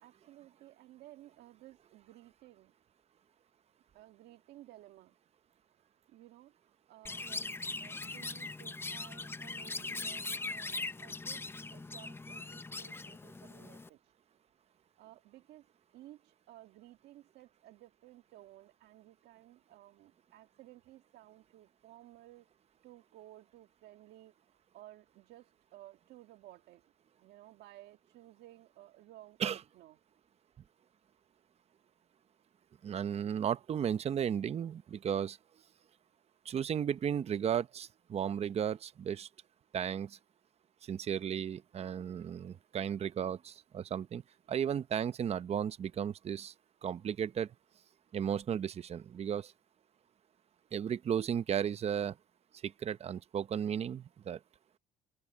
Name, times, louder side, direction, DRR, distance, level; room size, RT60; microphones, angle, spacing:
voice 1, 0.0-2.7 3.9-5.1 5.8-7.5 7.8-11.5 11.7-14.0 15.0-22.5 22.8-24.3 24.7-26.9 27.2-30.0, right 15 dB, 80° right, 1.9 m, -56 dB
Chirp tweet, 7.1-13.9, left 3 dB, 15° left, 0.7 m, -41 dB
voice 2, 32.8-35.4 36.4-39.3 39.7-40.2 40.8-44.2 44.5-46.5 46.8-47.5 48.1-49.5 50.7-52.2 52.6-54.4, right 8 dB, 40° right, 0.7 m, -34 dB
open air
cardioid pair, 110°, 17 cm